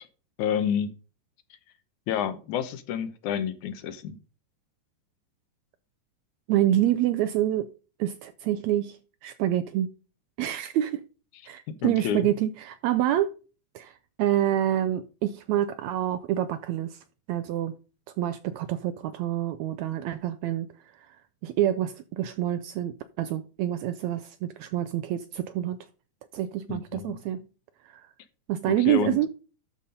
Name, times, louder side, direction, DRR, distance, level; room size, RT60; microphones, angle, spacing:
voice 1, 0.4-0.9 2.1-4.2 11.7-12.3 26.7-27.2 28.7-29.2, left 8 dB, 75° left, 2.2 m, -29 dB
voice 2, 6.5-7.7 8.0-9.0 9.2-9.9 10.4-11.0 11.5-13.3 13.7-13.9 14.2-17.0 17.3-17.7 18.2-20.7 21.4-25.8 26.3-27.4 27.9-28.0 28.5-29.3, right 12 dB, 80° right, 1.6 m, -27 dB
12.0 x 4.2 x 5.3 m
omnidirectional pair, 3.7 m